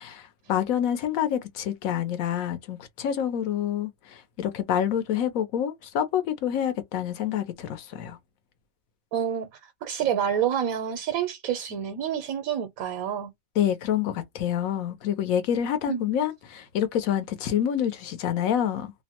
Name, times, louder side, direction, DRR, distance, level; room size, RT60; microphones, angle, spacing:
voice 1, 0.0-8.2 13.6-18.9, left 9 dB, 85° left, 1.1 m, -27 dB
voice 2, 9.1-13.3 15.9-16.1, right 9 dB, 90° right, 1.1 m, -28 dB
2.8 x 2.1 x 2.8 m
omnidirectional pair, 1.4 m